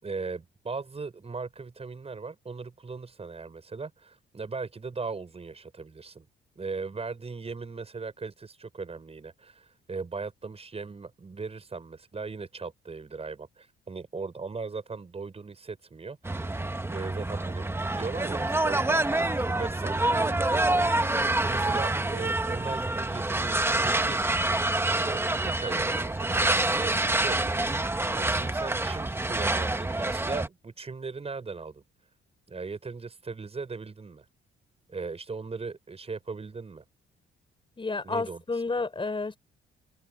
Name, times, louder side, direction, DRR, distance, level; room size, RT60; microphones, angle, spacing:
voice 1, 0.0-6.3 6.5-16.6 16.9-20.9 21.4-24.4 24.9-31.8 32.5-34.2 34.9-36.8 38.0-38.4, right 4 dB, 30° right, 6.7 m, -38 dB
sound 1, 16.2-30.5, right 2 dB, 10° right, 1.4 m, -27 dB
voice 2, 37.8-39.4, left 3 dB, 25° left, 5.6 m, -30 dB
cardioid pair, 90°, 20 cm